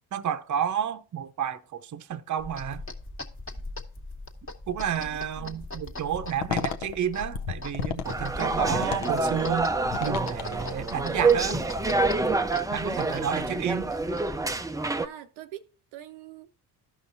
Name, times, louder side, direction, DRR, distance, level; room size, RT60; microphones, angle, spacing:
voice 1, 0.1-2.8 4.7-9.7 10.0-11.7 12.7-13.9, right 9 dB, 35° right, 0.7 m, -31 dB
sound 1, 2.4-14.5, left 2 dB, 25° left, 1.4 m, -40 dB
voice 2, 4.9-5.6 14.8-15.6 15.9-16.5, right 12 dB, 75° right, 0.7 m, -44 dB
sound 2, 6.2-11.1, left 7 dB, 75° left, 0.9 m, -34 dB
sound 3, 8.0-15.1, right 3 dB, 10° right, 0.4 m, -27 dB
13.5 x 5.5 x 2.6 m
hypercardioid pair, 60°, 49 cm